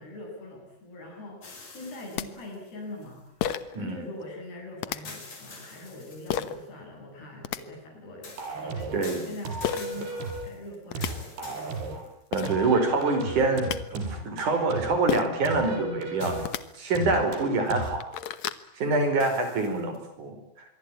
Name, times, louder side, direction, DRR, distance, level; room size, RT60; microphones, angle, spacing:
voice 1, 0.0-3.3 3.7-8.4 8.6-11.8, left 1 dB, 90° left, 2 dB, 9.7 m, -42 dB
sound 1, 1.4-3.6 5.0-6.7 8.2-12.5 13.1-13.2 16.2-17.0 19.2-20.0, left 3 dB, 50° left, 6.8 m, -47 dB
sound 2, 1.8-1.9 2.2-2.3 3.4-3.8 4.8-5.0 6.3-6.6 7.2-7.6 9.6-9.8 10.6-10.7 10.9-11.1 12.0-12.1 12.3-12.5 13.4-13.8 15.1-15.4 16.3-16.6 17.3-17.4 17.7-18.6, left 10 dB, 65° left, 1.9 m, -30 dB
voice 2, 3.7-4.1 8.9-9.2 12.3-16.5 16.8-18.0 18.8-20.4, right 3 dB, 50° right, 7 dB, 6.4 m, -26 dB
sound 3, 8.4-9.0 9.5-10.5 11.0-12.0 12.5-15.0 15.5-16.5 17.0-18.0, right 3 dB, 90° right, 6.3 m, -34 dB
26.5 x 23.0 x 8.8 m, 0.77 s
omnidirectional pair, 4.5 m